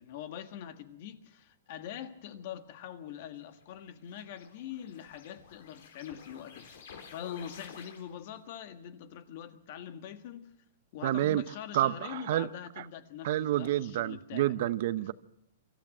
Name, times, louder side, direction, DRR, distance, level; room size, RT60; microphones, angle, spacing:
voice 1, 0.0-6.9 7.1-10.5 10.9-14.5, left 9 dB, 50° left, 1.6 m, -43 dB
sound 1, 3.4-8.4, left 6 dB, 70° left, 4.1 m, -52 dB
voice 2, 11.0-11.4 11.7-12.5 13.2-15.1, right 13 dB, 55° right, 0.8 m, -29 dB
24.5 x 14.0 x 7.7 m
hypercardioid pair, 145°, 0 cm